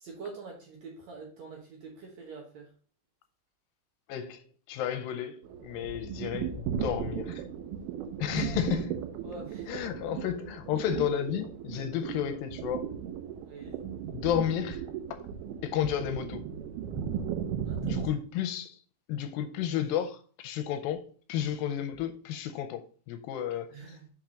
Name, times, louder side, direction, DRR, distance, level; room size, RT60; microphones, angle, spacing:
voice 1, 0.0-2.7 8.3-8.5 9.2-9.7 13.5-13.8 17.6-18.1 23.7-24.1, right 4 dB, 60° right, 2.0 m, -45 dB
voice 2, 4.1-7.4 8.2-9.0 9.7-12.8 14.1-14.8 15.6-16.4 17.8-18.8 19.1-21.0 21.3-22.8 23.1-24.0, left 10 dB, 80° left, 2.3 m, -32 dB
sound 1, 5.4-18.1, right 8 dB, 85° right, 2.7 m, -36 dB
5.9 x 4.6 x 5.0 m
omnidirectional pair, 4.3 m